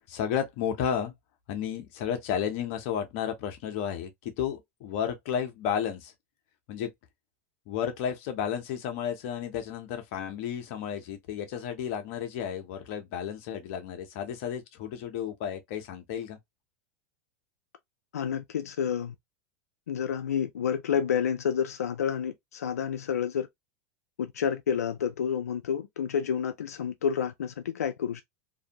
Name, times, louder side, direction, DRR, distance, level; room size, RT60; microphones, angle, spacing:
voice 1, 0.1-1.1 1.5-6.1 6.7-6.9 7.7-16.4, left 8 dB, 60° left, 0.8 m, -32 dB
voice 2, 18.1-19.1 19.9-23.5 24.2-28.2, left 8 dB, 90° left, 0.4 m, -29 dB
2.6 x 2.0 x 2.8 m
hypercardioid pair, 105°, 8 cm